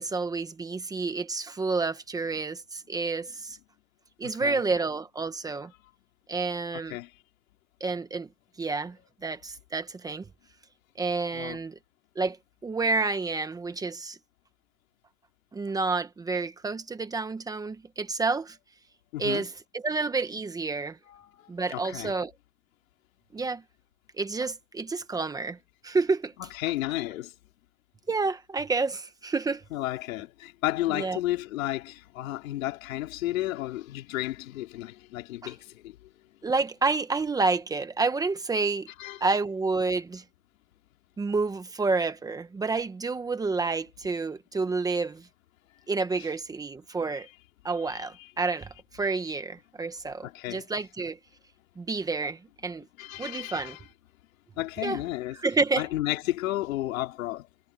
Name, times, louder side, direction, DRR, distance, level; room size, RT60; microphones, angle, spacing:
voice 1, 0.0-3.6 4.2-5.7 6.3-7.0 7.8-8.3 8.6-9.0 9.2-10.2 11.0-11.8 12.1-12.4 12.6-14.2 15.5-18.6 19.2-21.0 21.5-22.3 23.3-23.6 24.2-25.6 25.8-26.3 28.1-29.6 30.9-31.2 35.4-35.5 36.4-38.9 39.2-40.2 41.2-45.3 45.9-47.3 47.6-51.2 51.8-52.9 53.2-53.8 54.8-55.0 55.4-55.9, right 3 dB, 10° right, 1.1 m, -29 dB
voice 2, 4.2-4.6 6.7-7.1 11.3-11.6 19.1-19.5 21.1-22.1 26.4-27.3 29.7-36.0 39.0-39.2 46.2-46.3 47.9-48.3 50.2-50.7 53.0-53.8 54.6-55.4 55.8-57.5, left 15 dB, 90° left, 3.7 m, -33 dB
supercardioid pair, 160°, 39 cm